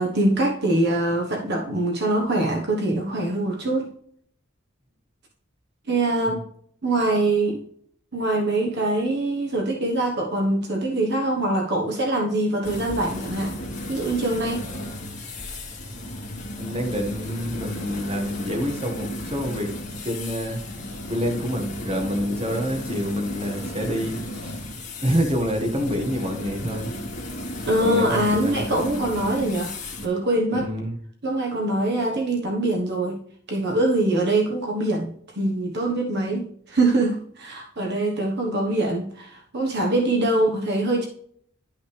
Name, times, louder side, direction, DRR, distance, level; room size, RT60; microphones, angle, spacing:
voice 1, 0.0-3.9 5.9-6.4 6.8-7.6 8.1-13.5 13.9-14.6 27.7-30.7 31.2-33.2 33.5-35.1 35.3-41.1, right 2 dB, 55° right, 1 dB, 1.1 m, -23 dB
sound 1, 12.6-30.1, left 1 dB, 35° left, 2.0 m, -34 dB
voice 2, 16.5-19.7 20.0-20.6 21.1-24.6 25.0-26.9 27.8-28.6 30.6-31.0, equal, 30° right, 2 dB, 1.5 m, -27 dB
11.5 x 5.8 x 3.3 m, 0.64 s
head